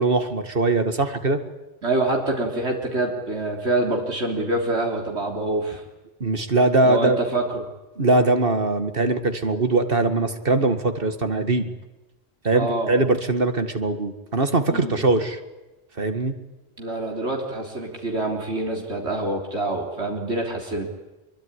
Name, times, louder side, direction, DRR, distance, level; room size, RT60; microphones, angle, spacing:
voice 1, 0.0-1.4 6.2-7.2 8.0-11.7 12.4-15.4 16.0-16.3, right 2 dB, 60° right, 9 dB, 2.3 m, -21 dB
voice 2, 1.8-5.8 6.8-7.7 12.5-12.9 14.7-15.0 16.8-20.9, right 2 dB, 85° right, 1 dB, 3.9 m, -26 dB
25.0 x 23.0 x 9.9 m, 1.1 s
omnidirectional pair, 1.1 m